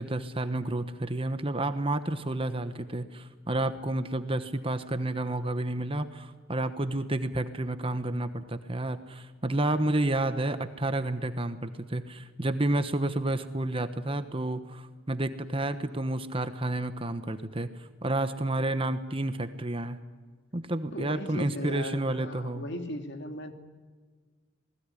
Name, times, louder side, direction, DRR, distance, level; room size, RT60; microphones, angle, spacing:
voice 1, 0.0-17.7 18.0-20.0 20.5-22.6, right 2 dB, 25° right, 10 dB, 1.1 m, -30 dB
voice 2, 20.9-23.5, left 1 dB, 55° left, 5 dB, 2.9 m, -37 dB
27.5 x 20.0 x 9.9 m, 1.5 s
head